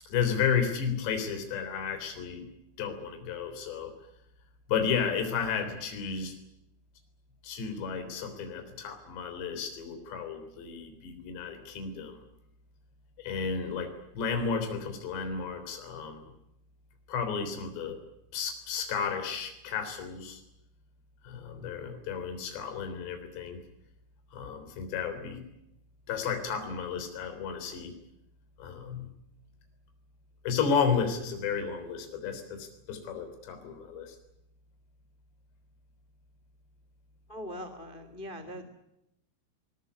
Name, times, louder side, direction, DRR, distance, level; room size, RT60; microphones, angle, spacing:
voice 1, 0.1-2.5 2.8-3.9 4.7-6.4 7.4-12.2 13.2-16.3 17.1-18.0 18.3-20.4 21.2-23.6 24.3-25.4 26.1-27.9 28.6-29.1 30.4-34.2, left 6 dB, 65° left, 7 dB, 5.5 m, -32 dB
voice 2, 37.3-38.7, equal, 85° left, 10 dB, 0.4 m, -41 dB
22.0 x 20.0 x 9.5 m, 0.84 s
omnidirectional pair, 5.6 m